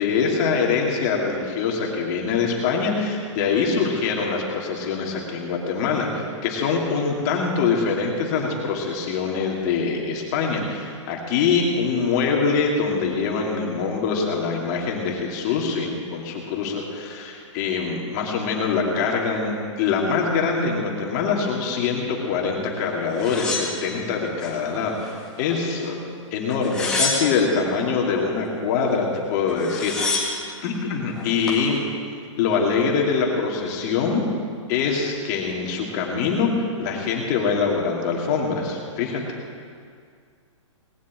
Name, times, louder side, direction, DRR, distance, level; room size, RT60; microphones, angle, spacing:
voice 1, 0.0-26.0 26.3-31.8 32.4-34.2 34.7-36.5 36.8-39.2, left 5 dB, 35° left, -1 dB, 2.8 m, -24 dB
sound 1, 23.2-24.6 25.0-25.8 26.5-27.6 29.2-29.3 29.5-30.5 31.2-31.7, left 3 dB, 5° left, 1.9 m, -28 dB
19.5 x 7.4 x 9.0 m, 2.2 s
hypercardioid pair, 160°, 16 cm